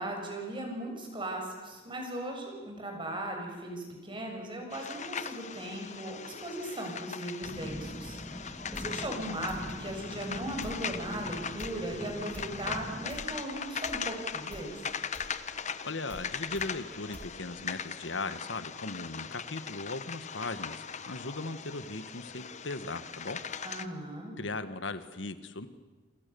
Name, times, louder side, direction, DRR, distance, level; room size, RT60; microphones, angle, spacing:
voice 1, 0.0-14.7 23.6-24.3, right 1 dB, 30° right, 2 dB, 6.8 m, -38 dB
sound 1, 4.7-23.9, left 6 dB, 40° left, 1.0 m, -40 dB
sound 2, 7.4-13.1, equal, 10° right, 1.6 m, -43 dB
sound 3, 8.7-8.9 9.5-9.7 10.6-10.8 11.6-11.7 12.3-12.5 13.1-13.3 13.8-14.0 14.5-14.7 15.1-15.3 16.1-16.3 16.5-16.7 17.1-17.3, equal, 10° left, 2.7 m, -46 dB
voice 2, 15.8-23.4 24.4-25.7, left 3 dB, 90° left, 11 dB, 1.6 m, -38 dB
27.5 x 26.5 x 7.0 m, 1.2 s
head